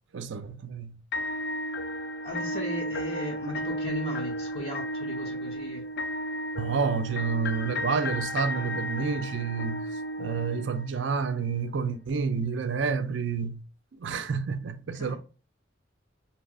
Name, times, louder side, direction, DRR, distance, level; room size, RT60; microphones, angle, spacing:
voice 1, 0.1-1.0 6.6-9.9 10.2-13.6 14.0-15.2, right 5 dB, 65° right, 0.5 m, -29 dB
sound 1, 1.1-11.2, equal, 55° left, 0.4 m, -33 dB
voice 2, 2.2-5.9 14.9-15.2, equal, 30° left, 0.8 m, -37 dB
5.2 x 2.8 x 2.4 m
head